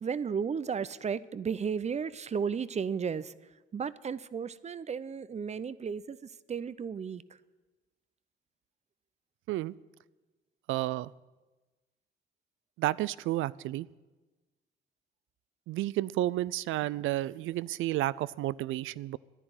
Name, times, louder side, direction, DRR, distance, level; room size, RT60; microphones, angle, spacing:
voice 1, 0.0-3.3 3.7-6.2 6.5-7.2, right 6 dB, 35° right, 0.6 m, -34 dB
voice 2, 10.7-11.1 12.8-13.9 15.7-19.2, right 15 dB, 85° right, 0.4 m, -31 dB
11.0 x 10.0 x 9.5 m
cardioid pair, 90°, 20 cm